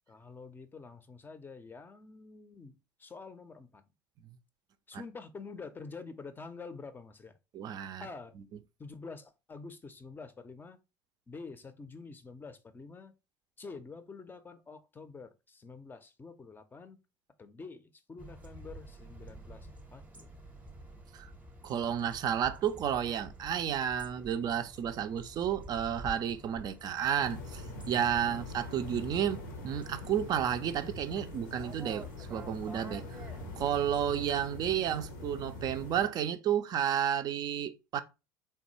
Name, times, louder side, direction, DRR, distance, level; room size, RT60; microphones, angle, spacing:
voice 1, 0.1-3.8 4.9-7.4 8.0-8.3 8.8-10.8 11.3-13.1 13.6-17.0 17.4-20.3 28.2-28.5, left 4 dB, 20° left, 0.5 m, -47 dB
voice 2, 7.5-8.1 21.1-21.3 21.6-33.1 33.6-38.0, right 9 dB, 40° right, 0.4 m, -32 dB
sound 1, 18.2-34.2, right 2 dB, 15° right, 0.7 m, -50 dB
sound 2, 27.2-36.1, left 2 dB, 75° left, 0.7 m, -43 dB
3.3 x 2.2 x 3.0 m
figure-of-eight pair, 65°, 10 cm